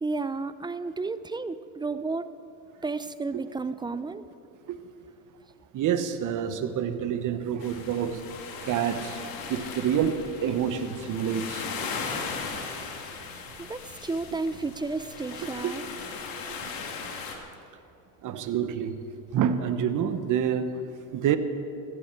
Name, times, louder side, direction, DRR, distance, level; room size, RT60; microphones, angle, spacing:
voice 1, 0.0-2.3 2.8-4.3 13.6-15.8, right 3 dB, 10° right, 13 dB, 0.4 m, -32 dB
voice 2, 5.7-8.2 8.6-9.2 9.5-11.7 15.6-15.8 16.6-16.7 18.2-19.0 19.3-21.4, right 8 dB, 50° right, 10 dB, 1.1 m, -28 dB
sound 1, 7.6-17.4, left 5 dB, 60° left, 2.1 m, -37 dB
15.0 x 15.0 x 4.5 m, 2.7 s
supercardioid pair, 95°, 40 cm